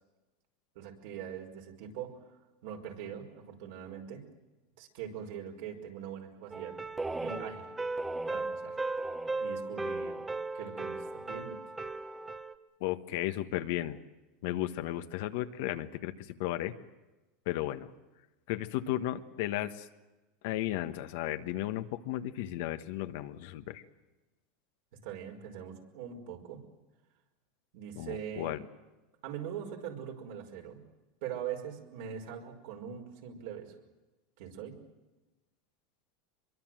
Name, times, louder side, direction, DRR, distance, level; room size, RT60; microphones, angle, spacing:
voice 1, 0.8-2.2 2.6-4.2 4.8-6.8 7.2-7.7 8.3-8.8 9.4-10.2 10.5-11.6 25.0-26.6 27.7-28.5 29.2-30.8 31.2-33.8 34.4-34.8, right 8 dB, 70° right, 2 dB, 5.1 m, -42 dB
sound 1, 6.5-12.6, right 3 dB, 10° right, 1.2 m, -36 dB
voice 2, 12.8-14.0 14.4-16.1 16.4-16.7 17.5-17.9 18.5-19.9 20.4-23.8 28.0-28.6, left 14 dB, 70° left, 9 dB, 1.4 m, -34 dB
24.5 x 23.0 x 7.7 m, 1.1 s
supercardioid pair, 130°, 0 cm